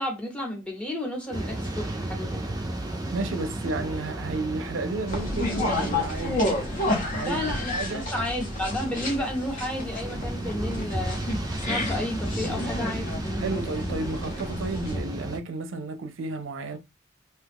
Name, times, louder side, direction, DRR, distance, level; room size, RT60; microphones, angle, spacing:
voice 1, 0.0-2.4 7.3-7.8 8.1-11.2 11.7-13.1, left 1 dB, 5° left, 0.9 m, -32 dB
harp gliss up, 1.2-2.2 3.6-4.7 5.8-6.8 8.8-9.8 10.4-11.4 12.2-13.3 13.9-14.9, right 1 dB, 85° left, 0.8 m, -47 dB
sound 1, 1.3-15.4, right 1 dB, 20° right, 0.4 m, -34 dB
voice 2, 3.1-8.1 13.4-16.8, right 3 dB, 75° right, 0.5 m, -32 dB
sound 2, 5.1-15.0, left 1 dB, 40° left, 0.8 m, -30 dB
2.8 x 2.3 x 3.4 m
head